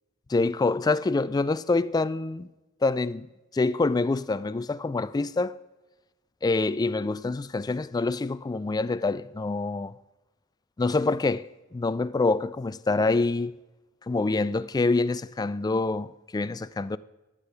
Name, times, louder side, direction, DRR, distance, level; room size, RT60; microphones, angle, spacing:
voice 1, 0.3-2.5 2.8-3.3 3.5-5.6 6.4-9.9 10.8-11.5 11.7-13.6 14.1-17.0, left 3 dB, 20° left, 0.3 m, -26 dB
15.0 x 9.8 x 3.4 m
head